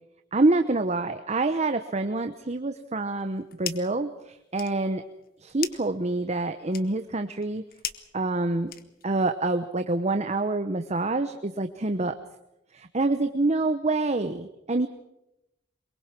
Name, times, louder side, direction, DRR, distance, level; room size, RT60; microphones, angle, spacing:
voice 1, 0.3-5.0 5.4-7.6 8.1-8.7 9.0-12.2 12.7-14.9, right 2 dB, 35° right, 8 dB, 0.9 m, -26 dB
sound 1, 3.2-4.0 4.3-9.2, left 10 dB, 50° left, 1.3 m, -40 dB
23.0 x 22.5 x 6.1 m, 0.89 s
head